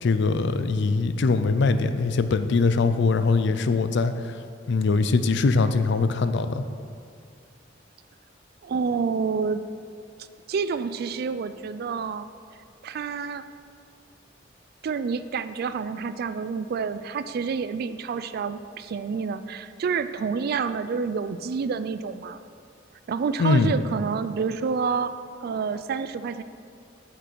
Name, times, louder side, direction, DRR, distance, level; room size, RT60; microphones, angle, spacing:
voice 1, 0.0-4.4 4.7-6.6 23.4-23.7, left 4 dB, 65° left, 10 dB, 0.4 m, -22 dB
voice 2, 8.6-9.6 10.5-12.3 12.8-13.5 14.8-22.4 23.1-25.1 25.4-26.4, right 5 dB, 55° right, 12 dB, 0.3 m, -28 dB
8.1 x 6.2 x 4.6 m, 2.3 s
head